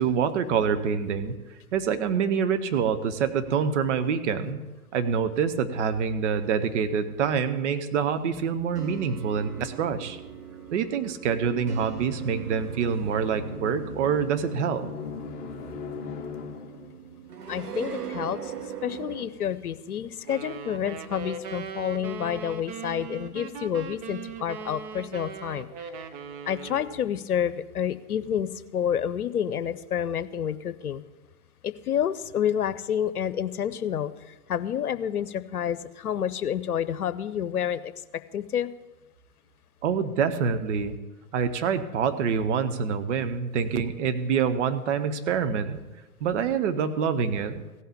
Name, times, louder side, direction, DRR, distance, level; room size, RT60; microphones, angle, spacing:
voice 1, 0.0-1.3 1.7-4.6 4.9-10.2 10.7-14.9 39.8-41.0 41.3-45.8 46.2-47.6, right 6 dB, 50° right, 10 dB, 1.1 m, -26 dB
sound 1, 8.3-19.3, right 7 dB, 80° right, 1.2 m, -40 dB
sound 2, 11.5-17.0, left 6 dB, 20° left, 1.3 m, -40 dB
voice 2, 17.5-26.1 26.5-31.0 31.6-37.9 38.3-38.7, left 9 dB, 75° left, 14 dB, 0.8 m, -29 dB
sound 3, 20.2-27.1, right 6 dB, 25° right, 0.7 m, -39 dB
16.0 x 5.6 x 8.6 m, 1.1 s
figure-of-eight pair, 115°, 45 cm